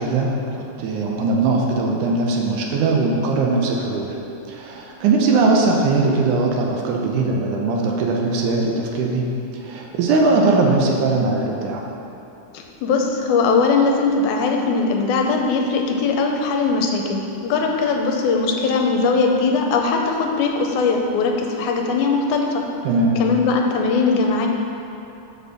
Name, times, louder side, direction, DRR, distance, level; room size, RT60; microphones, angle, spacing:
voice 1, 0.0-4.1 4.5-9.3 9.6-11.8 22.8-23.2, right 3 dB, 85° right, 0 dB, 2.3 m, -20 dB
voice 2, 12.5-22.6 23.2-24.5, left 4 dB, 80° left, 2 dB, 2.1 m, -20 dB
6.6 x 5.4 x 6.3 m, 2.8 s
omnidirectional pair, 3.5 m